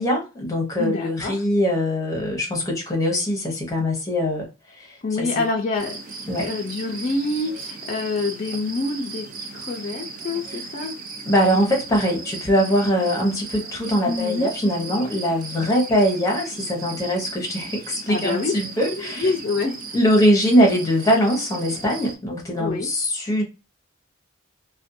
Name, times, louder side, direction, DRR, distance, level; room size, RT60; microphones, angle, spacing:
voice 1, 0.0-4.5 4.8-4.9 5.2-5.4 6.3-6.5 10.5-10.6 11.2-19.3 19.9-23.4, equal, 15° left, 0.8 m, -22 dB
voice 2, 0.8-1.3 5.0-9.3 9.5-11.0 14.1-14.5 18.1-18.5 18.9-19.8 22.6-22.9, left 3 dB, 35° left, 0.4 m, -26 dB
sound 1, 5.8-22.1, right 4 dB, 40° right, 0.4 m, -37 dB
2.5 x 2.2 x 2.6 m
head